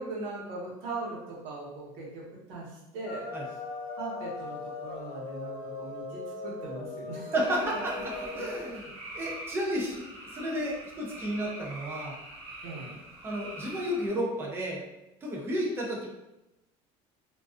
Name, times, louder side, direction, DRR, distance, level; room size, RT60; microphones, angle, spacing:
voice 1, 0.0-2.2 2.5-2.7 2.9-3.3 4.0-7.3 12.6-12.9, right 2 dB, 85° right, -4 dB, 0.9 m, -39 dB
sound 1, 3.0-8.7, left 3 dB, 85° left, 0.4 m, -39 dB
voice 2, 7.3-8.9 9.1-12.2 13.2-14.8 15.2-16.1, equal, 15° right, -3 dB, 0.4 m, -32 dB
sound 2, 7.3-14.1, right 1 dB, 30° right, 0.9 m, -44 dB
2.3 x 2.2 x 2.4 m, 0.93 s
cardioid pair, 165°, 15 cm